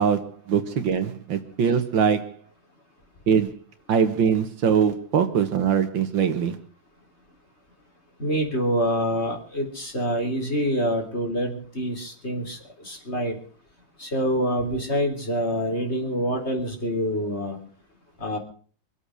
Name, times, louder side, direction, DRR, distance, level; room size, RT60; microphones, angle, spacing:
voice 1, 0.0-2.4 3.3-3.6 3.9-6.6, right 7 dB, 70° right, 2.0 m, -22 dB
voice 2, 8.2-13.4 14.0-17.6 18.2-18.4, equal, 30° left, 3.9 m, -26 dB
25.0 x 8.5 x 6.3 m
omnidirectional pair, 2.2 m